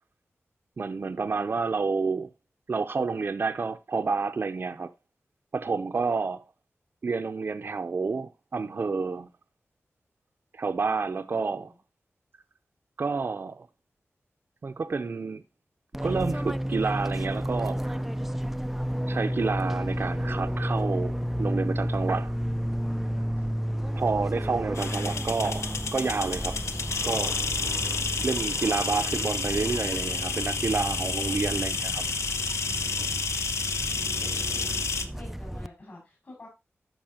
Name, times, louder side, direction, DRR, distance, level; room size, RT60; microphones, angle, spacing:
voice 1, 0.8-2.3 2.7-4.9 5.5-6.4 7.0-9.3 10.5-11.7 13.0-13.7 14.6-15.4 16.0-18.0 19.1-22.3 24.0-26.6 27.0-27.3 28.2-32.0, right 4 dB, 50° right, 0.6 m, -29 dB
voice 2, 11.1-11.7 34.6-36.5, left 2 dB, 45° left, 5.5 m, -49 dB
Fixed-wing aircraft airplane, 15.9-35.7, equal, 5° right, 0.4 m, -32 dB
sound 1, 24.7-35.1, left 4 dB, 80° left, 0.9 m, -30 dB
13.5 x 5.5 x 2.8 m
wide cardioid pair, 120°, 5 cm